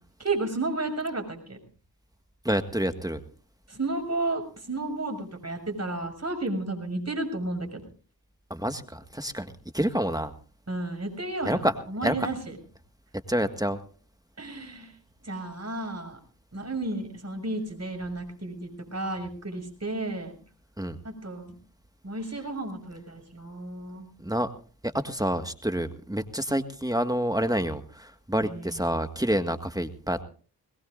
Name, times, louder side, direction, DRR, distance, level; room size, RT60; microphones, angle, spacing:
voice 1, 0.2-1.6 3.7-7.8 10.7-12.6 14.4-14.9 15.2-16.2 16.5-20.4 21.0-21.5 22.0-24.1 28.4-28.9, right 2 dB, 35° right, 5 dB, 6.6 m, -32 dB
voice 2, 2.5-3.2 8.5-10.3 11.5-11.7 12.0-12.3 13.3-13.8 20.8-21.0 24.2-24.5 24.8-30.2, equal, 10° right, 8 dB, 1.8 m, -28 dB
21.5 x 21.0 x 2.6 m, 0.39 s
supercardioid pair, 40°, 44 cm